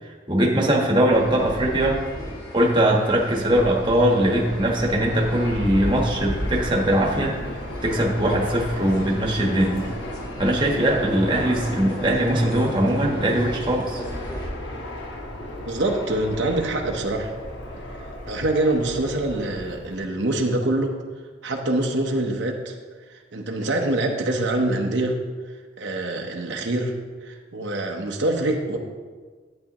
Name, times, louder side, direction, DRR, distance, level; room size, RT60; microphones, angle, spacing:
voice 1, 0.0-2.0 2.5-7.3 7.8-9.9 10.4-14.0, right 1 dB, 25° right, -1 dB, 1.2 m, -21 dB
sound 1, 1.1-14.5, equal, 20° left, 2.0 m, -36 dB
Fixed-wing aircraft airplane, 3.6-20.0, left 1 dB, 75° left, 1.4 m, -35 dB
voice 2, 15.7-17.3 18.3-21.0 21.4-22.8 23.1-25.2 25.8-26.9 27.2-28.8, right 2 dB, 75° right, 2 dB, 0.9 m, -25 dB
11.0 x 8.7 x 3.0 m, 1.5 s
head